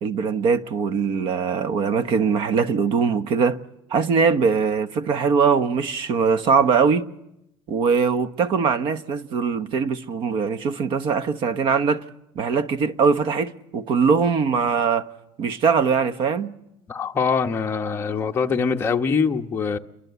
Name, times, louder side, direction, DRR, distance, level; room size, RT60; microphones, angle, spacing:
voice 1, 0.0-3.6 3.9-7.1 7.7-12.0 12.3-15.1 15.4-16.5, right 5 dB, 50° right, 1.1 m, -21 dB
voice 2, 16.9-19.8, left 5 dB, 20° left, 1.1 m, -23 dB
29.0 x 23.5 x 8.2 m
cardioid pair, 155°, 11 cm